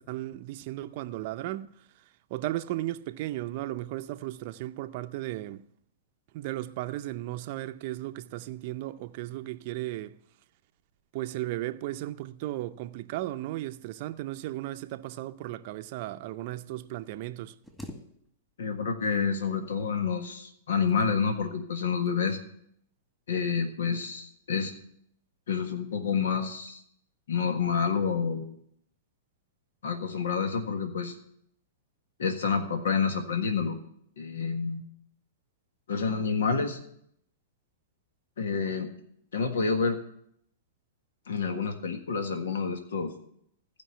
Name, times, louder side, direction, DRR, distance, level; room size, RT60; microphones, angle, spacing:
voice 1, 0.0-1.8 2.3-5.6 6.3-10.2 11.1-17.6, right 15 dB, 50° right, 0.6 m, -35 dB
sound 1, 17.6-18.7 19.0-19.7 20.6-21.4 22.1-22.4 22.8-23.1, equal, 5° left, 2.0 m, -47 dB
voice 2, 18.6-22.4 23.3-24.7 25.5-26.8 27.3-28.5 29.8-31.1 32.2-33.8 34.2-34.8 35.9-36.8 38.4-38.9 39.3-40.0 41.3-43.1, left 5 dB, 80° left, 1.6 m, -28 dB
15.5 x 5.3 x 9.2 m
hypercardioid pair, 120°, 0 cm